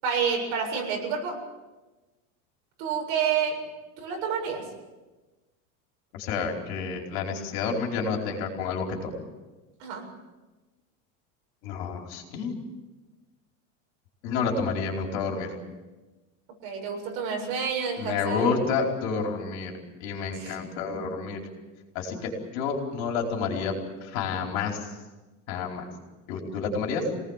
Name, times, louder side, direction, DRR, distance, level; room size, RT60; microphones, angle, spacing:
voice 1, 0.0-1.4 2.8-3.6 4.0-4.7 9.8-10.1 16.6-18.5 20.4-20.6, right 6 dB, 55° right, 1 dB, 7.4 m, -29 dB
voice 2, 6.1-9.2 11.6-12.6 14.2-15.5 18.0-19.7 20.0-21.4 21.9-23.7 24.0-24.9 25.5-25.9 26.3-27.0, left 5 dB, 60° left, 1 dB, 4.8 m, -29 dB
26.0 x 19.0 x 7.5 m, 1.2 s
cardioid pair, 170°, 36 cm